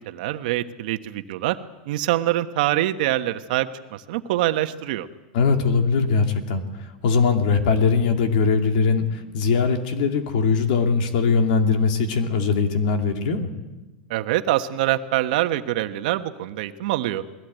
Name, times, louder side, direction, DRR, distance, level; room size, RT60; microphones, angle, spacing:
voice 1, 0.0-1.6 1.9-5.1 14.1-17.2, right 14 dB, 65° right, 8 dB, 1.3 m, -24 dB
voice 2, 5.3-6.6 7.0-13.5, left 5 dB, 65° left, 5 dB, 2.6 m, -21 dB
20.5 x 17.0 x 9.2 m, 1.1 s
supercardioid pair, 145°, 5 cm